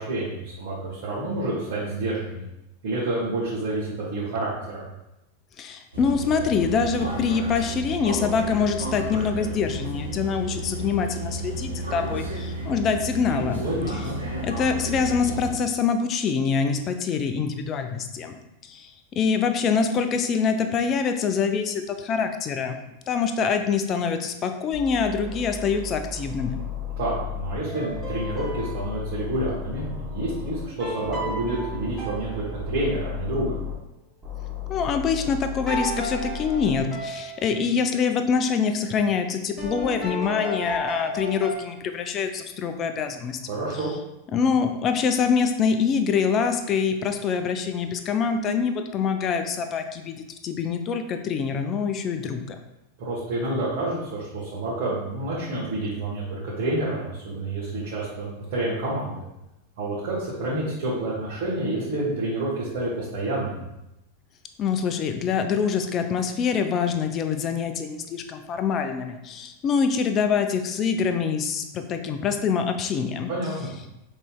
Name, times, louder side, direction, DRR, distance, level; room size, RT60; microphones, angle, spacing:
voice 1, 0.0-2.4 2.8-4.8 13.6-14.2 27.0-33.6 43.5-43.9 53.0-59.2 59.8-63.6 73.3-73.7, right 2 dB, 50° right, -8 dB, 1.2 m, -28 dB
voice 2, 5.6-13.6 14.4-18.4 18.6-22.8 23.1-26.6 34.7-43.4 44.3-50.2 50.4-52.6 64.6-73.3, left 6 dB, 30° left, 7 dB, 0.4 m, -25 dB
sound 1, 5.9-15.5, right 1 dB, 80° right, 1.0 m, -32 dB
sound 2, 24.7-27.6 27.9-30.7 31.0-33.8 34.2-36.8, left 6 dB, 10° right, 1.5 m, -35 dB
sound 3, 27.6-29.2 30.8-33.0 35.7-37.7 39.6-41.6, equal, 5° left, 1.3 m, -34 dB
5.3 x 3.1 x 2.2 m, 0.90 s
figure-of-eight pair, 90°, 0 cm